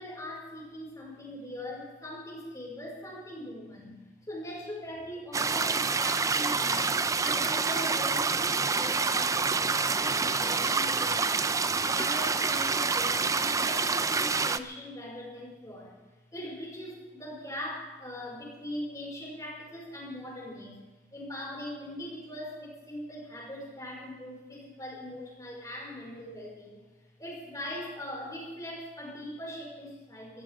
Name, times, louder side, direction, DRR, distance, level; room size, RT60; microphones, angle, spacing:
voice 1, 0.0-11.5 11.9-16.0 16.3-20.8 21.1-26.8 27.2-30.4, left 1 dB, 20° left, -3 dB, 5.2 m, -41 dB
sound 1, 5.3-14.6, right 4 dB, 20° right, 0.4 m, -27 dB
24.5 x 15.0 x 3.5 m, 1.1 s
head